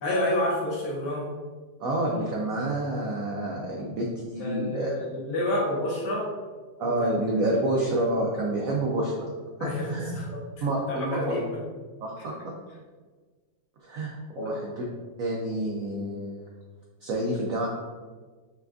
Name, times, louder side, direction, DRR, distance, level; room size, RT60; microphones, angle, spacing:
voice 1, 0.0-1.3 4.4-6.3 6.8-7.1 9.6-10.4 10.9-11.6 14.4-14.5, left 1 dB, 65° left, -4 dB, 1.5 m, -29 dB
voice 2, 1.8-4.9 6.8-9.3 9.6-10.1 10.6-11.4 12.0-12.3 13.8-14.9 15.2-16.4 17.0-17.7, right 1 dB, 80° right, -2 dB, 0.7 m, -28 dB
5.7 x 2.3 x 2.5 m, 1.4 s
omnidirectional pair, 2.0 m